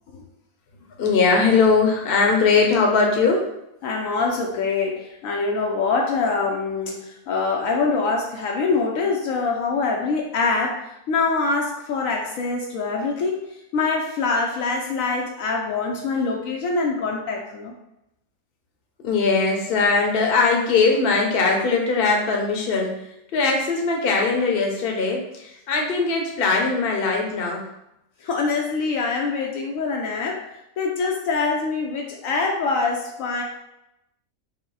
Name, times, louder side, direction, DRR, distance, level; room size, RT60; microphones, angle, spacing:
voice 1, 1.0-3.5 19.0-23.0 23.3-27.6, left 4 dB, 50° left, 1 dB, 0.8 m, -20 dB
voice 2, 3.8-10.8 11.1-13.5 13.7-17.7 28.2-33.4, left 4 dB, 75° left, 1 dB, 1.0 m, -24 dB
4.6 x 2.1 x 4.0 m, 0.85 s
omnidirectional pair, 1.5 m